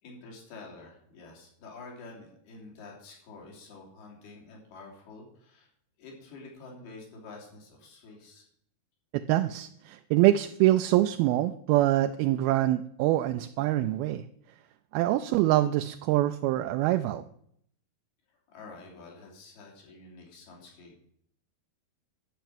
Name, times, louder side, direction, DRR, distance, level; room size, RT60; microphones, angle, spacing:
voice 1, 0.0-5.7 6.0-8.5 18.5-20.9, left 3 dB, 80° left, -1 dB, 5.0 m, -48 dB
voice 2, 9.3-14.2 14.9-17.2, right 15 dB, 80° right, 7 dB, 2.4 m, -25 dB
12.0 x 5.7 x 9.1 m, 0.68 s
omnidirectional pair, 4.5 m